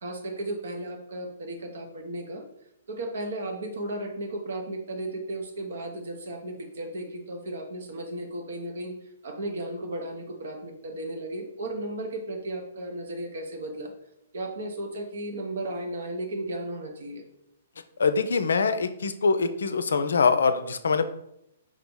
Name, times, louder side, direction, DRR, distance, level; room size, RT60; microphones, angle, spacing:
voice 1, 0.0-2.4 2.9-9.0 9.2-13.9 14.3-17.2, right 1 dB, 65° right, 3 dB, 0.9 m, -35 dB
voice 2, 18.0-21.1, left 4 dB, 70° left, 11 dB, 0.4 m, -24 dB
4.6 x 2.9 x 3.8 m, 0.80 s
figure-of-eight pair, 120°, 0 cm